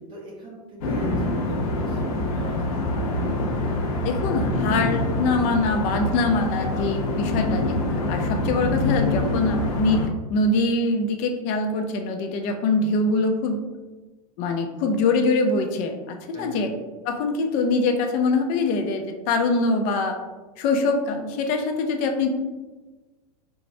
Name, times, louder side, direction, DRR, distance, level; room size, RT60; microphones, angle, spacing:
voice 1, 0.1-3.1 9.9-10.2 16.3-16.7, right 1 dB, 25° right, -3 dB, 0.6 m, -42 dB
sound 1, 0.8-10.1, left 2 dB, 70° left, 0.8 m, -25 dB
voice 2, 4.0-7.7 8.1-13.6 14.4-16.7 17.0-20.2 20.6-22.3, left 3 dB, 40° left, 5 dB, 0.5 m, -23 dB
4.5 x 2.0 x 2.6 m, 1.2 s
supercardioid pair, 140°, 20 cm